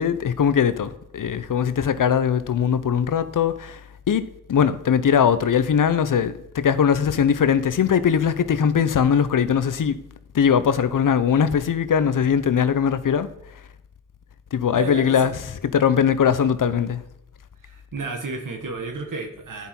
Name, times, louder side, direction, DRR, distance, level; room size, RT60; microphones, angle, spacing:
voice 1, 0.0-3.8 4.1-4.2 4.5-10.0 10.3-13.3 14.5-15.3 15.6-17.0, left 7 dB, 80° left, 0.6 m, -20 dB
voice 2, 14.7-15.4 17.6-19.7, right 3 dB, 80° right, 1.4 m, -32 dB
10.5 x 5.4 x 4.4 m
cardioid pair, 45°, 31 cm